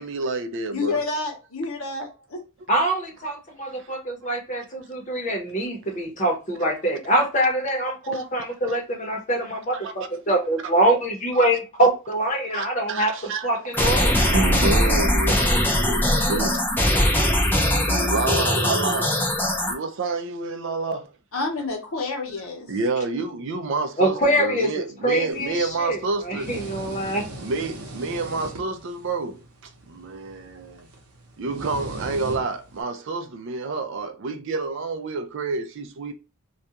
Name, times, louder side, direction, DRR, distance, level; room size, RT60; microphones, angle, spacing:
voice 1, 0.0-1.0 3.6-3.9 5.6-5.7 6.6-6.7 8.1-8.3 8.7-8.8 9.7-10.7 11.3-11.5 12.5-13.5 13.8-16.6 17.4-17.5 17.8-19.2 19.6-21.1 22.7-26.5 27.4-30.9 31.4-36.1, right 3 dB, 60° right, 0.4 m, -29 dB
voice 2, 0.7-2.4 17.0-17.5 21.3-22.7, left 3 dB, 70° left, 0.9 m, -29 dB
voice 3, 2.7-13.1 13.4-14.2 24.0-26.0 26.2-27.2, right 1 dB, 35° left, 0.8 m, -24 dB
sound 1, 13.7-19.7, left 1 dB, 10° left, 0.4 m, -21 dB
sound 2, 25.3-32.8, right 1 dB, 90° right, 0.7 m, -40 dB
2.4 x 2.2 x 2.8 m
head